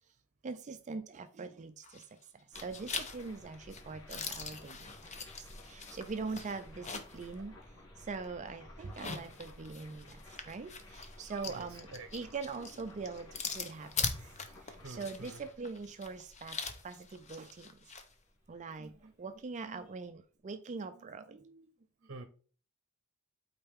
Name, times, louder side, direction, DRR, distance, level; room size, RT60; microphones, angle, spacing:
voice 1, 0.4-7.6 8.0-17.8 18.5-21.7, right 4 dB, 35° right, 9 dB, 0.4 m, -43 dB
sound 1, 1.8-2.2 2.5-7.3 7.6-7.7 8.8-18.1, left 5 dB, 30° left, 0.8 m, -42 dB
sound 2, 2.5-19.4, left 1 dB, 70° left, 2.9 m, -55 dB
voice 2, 11.3-12.1 14.8-15.4 22.0-22.3, right 3 dB, 55° right, 9 dB, 0.7 m, -47 dB
8.5 x 4.4 x 3.6 m, 0.41 s
head